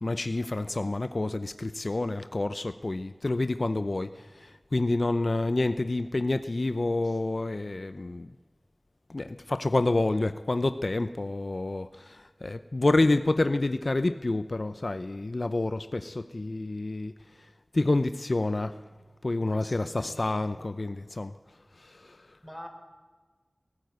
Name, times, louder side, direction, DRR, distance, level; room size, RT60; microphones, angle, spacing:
voice 1, 0.0-4.1 4.4-8.3 9.1-17.1 17.7-18.7 19.2-21.3 21.8-22.2, left 2 dB, 55° left, 11 dB, 0.6 m, -28 dB
voice 2, 19.5-20.6 22.4-22.7, equal, 5° left, 5 dB, 3.8 m, -46 dB
19.0 x 14.5 x 9.3 m, 1.4 s
wide cardioid pair, 55°, 0 cm